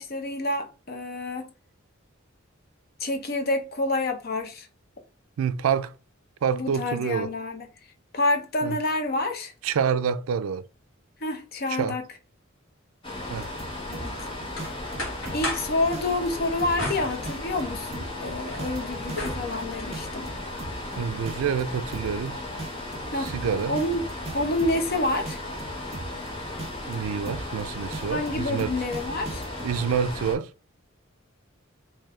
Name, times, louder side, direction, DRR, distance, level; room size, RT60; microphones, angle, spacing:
voice 1, 0.0-1.5 3.0-4.7 6.5-7.7 8.1-9.5 11.2-12.0 13.9-14.2 15.3-20.3 23.1-23.3 23.7-24.0 24.3-25.4 28.1-29.4, left 2 dB, 50° left, 0.7 m, -28 dB
voice 2, 5.4-5.9 6.4-7.3 8.6-8.8 9.6-10.7 11.7-12.0 13.3-13.5 21.0-22.4 23.2-23.8 26.9-28.7 29.6-30.5, right 7 dB, 85° right, 0.4 m, -27 dB
sound 1, 13.0-30.4, left 1 dB, 25° left, 1.1 m, -36 dB
sound 2, 13.3-14.3 14.6-15.6 15.9-16.3 16.6-16.9 17.3-19.6 19.9-20.9 21.3-21.6 21.9-22.3 22.6-24.9 25.3-26.3 26.6-26.9 27.3-27.6 27.9-29.7, right 2 dB, 30° right, 0.6 m, -38 dB
sound 3, 14.1-15.8 16.8-17.8 18.2-20.0, left 1 dB, 75° left, 1.5 m, -35 dB
3.3 x 2.6 x 3.6 m
head